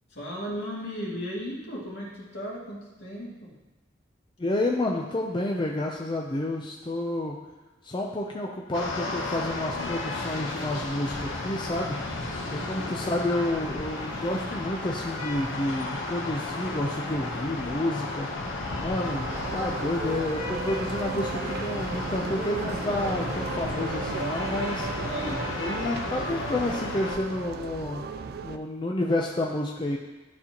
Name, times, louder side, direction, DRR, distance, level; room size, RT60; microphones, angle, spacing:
voice 1, 0.1-3.5 12.4-13.0 25.0-25.5, equal, 65° left, -5 dB, 2.2 m, -36 dB
voice 2, 4.4-7.4 7.8-12.0 12.5-18.3 18.8-24.9 25.6-28.1 28.4-30.0, left 1 dB, 25° left, -1 dB, 0.5 m, -30 dB
sound 1, 8.7-27.2, left 2 dB, 90° left, 1.0 m, -33 dB
sound 2, 19.0-28.6, right 4 dB, 55° right, 0.4 m, -35 dB
12.0 x 4.2 x 2.9 m, 1.2 s
head